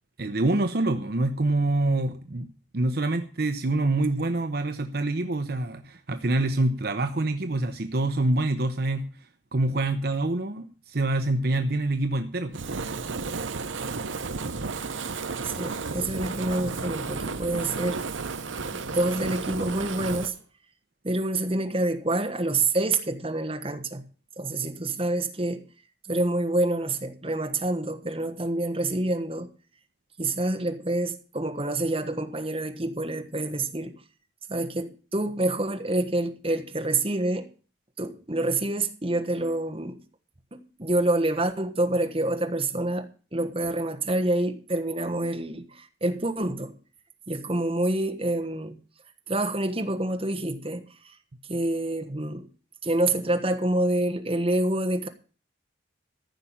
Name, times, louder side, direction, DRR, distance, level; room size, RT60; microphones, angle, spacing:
voice 1, 0.2-9.1 9.5-12.6, right 2 dB, 55° right, 0.8 m, -26 dB
Fire, 12.5-20.4, right 4 dB, 85° right, 0.8 m, -33 dB
voice 2, 15.4-18.0 18.7-20.3 21.0-24.0 24.4-25.6 26.1-29.5 30.2-34.0 34.5-37.5 38.0-40.0 40.5-46.7 47.3-48.8 49.3-51.1 51.5-52.5 52.8-55.1, right 2 dB, 30° right, 1.3 m, -27 dB
14.5 x 5.8 x 8.7 m
head